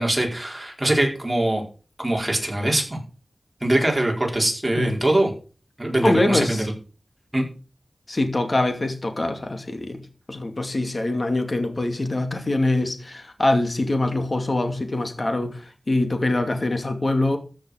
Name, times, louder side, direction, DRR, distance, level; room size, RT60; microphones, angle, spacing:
voice 1, 0.0-1.6 2.0-3.0 3.6-5.3 5.8-6.6 7.3-7.4, right 1 dB, 20° right, 4.6 m, -22 dB
voice 2, 6.0-6.7 8.1-10.0 10.3-17.4, left 2 dB, 45° left, 2.6 m, -24 dB
14.0 x 6.4 x 6.4 m
wide cardioid pair, 80°, 0 cm